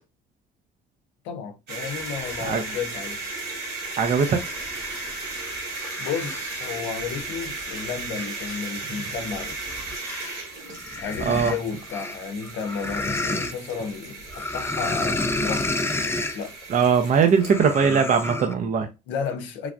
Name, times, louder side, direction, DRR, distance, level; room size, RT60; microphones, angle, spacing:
voice 1, 1.2-3.2 6.0-9.6 11.0-15.8 16.3-16.6 19.1-19.7, left 6 dB, 75° left, 0.6 m, -32 dB
sound 1, 1.7-17.6, right 3 dB, 70° right, 1.9 m, -36 dB
sound 2, 2.0-3.1 3.7-10.4 10.7-13.5 14.3-16.4 17.3-18.5, left 2 dB, 15° left, 0.4 m, -32 dB
voice 2, 4.0-4.4 11.2-11.5 16.7-18.9, right 6 dB, 45° right, 0.5 m, -20 dB
3.2 x 2.4 x 2.4 m
supercardioid pair, 70°, 19 cm